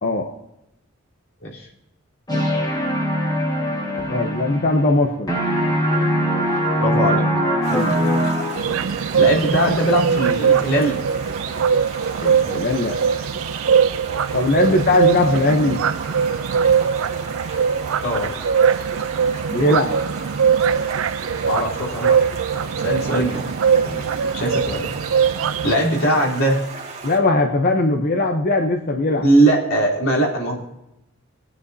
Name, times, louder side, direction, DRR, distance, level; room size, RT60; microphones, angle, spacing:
sound 1, 2.3-5.0 5.3-8.9, equal, 20° left, 1.7 m, -22 dB
voice 1, 4.1-5.3 7.7-8.0 12.2-13.0 14.3-15.8 19.5-20.0 23.7-24.0 27.0-29.2, left 2 dB, 45° left, 3 dB, 0.8 m, -20 dB
voice 2, 6.8-7.3 9.2-11.0 18.0-18.3 21.4-22.3 22.7-23.4 24.3-24.9 25.6-26.6 29.2-30.6, right 1 dB, 90° left, -5 dB, 3.7 m, -20 dB
Stream, 7.6-27.2, right 4 dB, 35° right, 2.0 m, -36 dB
sound 2, 8.5-25.8, right 7 dB, 75° right, 0.4 m, -21 dB
22.5 x 9.6 x 2.8 m, 0.87 s
head